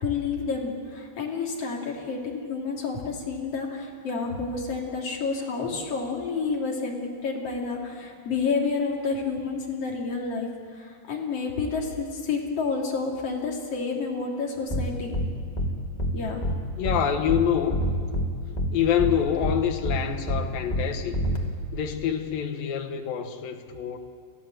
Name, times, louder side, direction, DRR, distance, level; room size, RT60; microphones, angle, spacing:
voice 1, 0.0-15.1 16.1-16.4, left 4 dB, 40° left, -1 dB, 3.1 m, -29 dB
sound 1, 14.7-14.8 15.1-15.3 15.6-15.7 16.0-16.1 16.4-16.5 16.8-17.0 17.3-17.4 17.7-18.3 18.6-18.7 19.0-19.1 19.4-19.5 19.8-20.0 20.3-20.4 20.7-20.8 21.1-21.4, equal, 25° left, 1.0 m, -26 dB
voice 2, 16.8-17.8 18.7-21.3 21.7-24.0, left 9 dB, 65° left, 6 dB, 2.6 m, -26 dB
28.0 x 15.5 x 7.8 m, 2.2 s
omnidirectional pair, 5.1 m